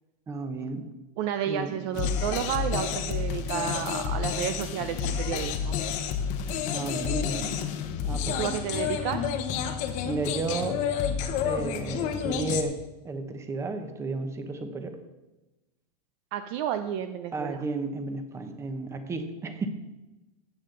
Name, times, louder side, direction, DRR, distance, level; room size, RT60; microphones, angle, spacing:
voice 1, 0.3-0.9 1.5-1.8 6.7-7.6 8.0-8.5 8.8-8.9 10.0-10.8 11.4-12.8 13.0-15.0 17.3-19.7, right 3 dB, 15° right, 7 dB, 0.9 m, -33 dB
voice 2, 1.2-5.8 8.2-9.3 16.3-17.6, right 10 dB, 40° right, 9 dB, 0.5 m, -31 dB
sound 1, 1.9-12.6, left 7 dB, 35° left, 1.0 m, -30 dB
15.0 x 8.5 x 3.9 m, 1.1 s
supercardioid pair, 155°, 21 cm